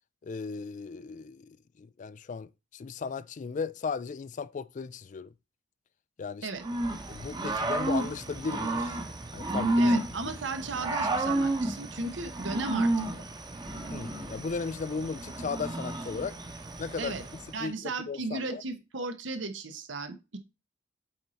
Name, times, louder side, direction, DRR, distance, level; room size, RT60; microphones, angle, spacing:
voice 1, 0.2-5.3 6.2-6.5 7.1-9.0 9.3-9.9 13.9-16.4 16.8-18.6, left 5 dB, 40° left, 0.3 m, -36 dB
Growling / Cricket, 6.6-17.5, right 1 dB, 25° right, 1.0 m, -31 dB
voice 2, 9.8-13.2 17.0-17.2 17.5-20.4, right 3 dB, 80° right, 1.1 m, -35 dB
8.1 x 4.2 x 4.2 m
head